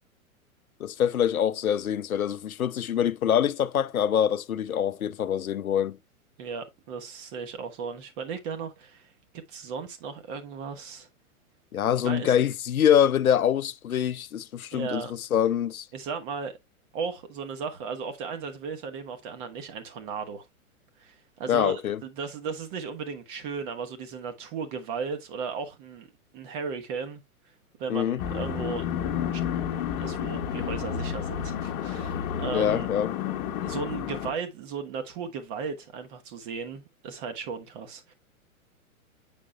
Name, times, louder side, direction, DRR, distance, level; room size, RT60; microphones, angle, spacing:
voice 1, 0.8-6.0 11.7-15.9 21.5-22.0 27.9-28.2 32.5-33.1, left 9 dB, 75° left, 0.6 m, -25 dB
voice 2, 6.4-9.1 9.5-11.1 12.0-12.3 14.7-15.1 15.9-16.6 16.9-20.4 21.0-26.1 26.3-27.2 27.8-28.9 29.3-29.4 30.0-32.9 33.6-38.1, right 5 dB, 35° right, 1.3 m, -36 dB
sound 1, 28.2-34.3, left 8 dB, 35° left, 1.1 m, -31 dB
7.5 x 6.0 x 2.2 m
figure-of-eight pair, 105°, 43 cm